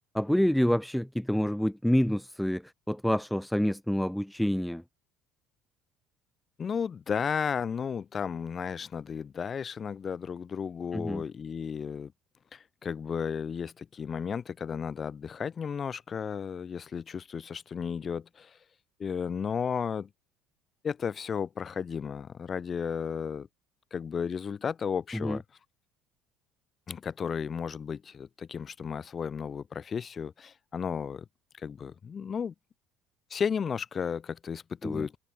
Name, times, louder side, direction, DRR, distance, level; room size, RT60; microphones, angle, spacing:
voice 1, 0.1-4.8 10.9-11.2 25.1-25.4 34.8-35.1, equal, ahead, 2.5 m, -27 dB
voice 2, 6.6-12.1 12.5-18.6 19.0-20.1 20.8-23.5 23.9-25.4 26.9-31.2 31.6-32.5 33.3-35.2, left 6 dB, 40° left, 6.7 m, -34 dB
hypercardioid pair, 65°, 0 cm